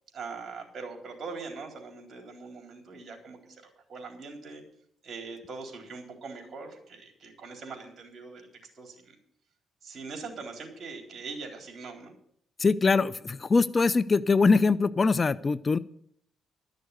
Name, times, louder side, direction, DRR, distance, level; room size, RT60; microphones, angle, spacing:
voice 1, 0.1-4.6 5.0-8.5 8.7-9.2 9.8-12.1, right 4 dB, 50° right, 3 dB, 3.9 m, -42 dB
voice 2, 12.6-15.8, left 4 dB, 30° left, 17 dB, 0.4 m, -23 dB
12.5 x 6.5 x 9.5 m, 0.67 s
cardioid pair, 90°, 0 cm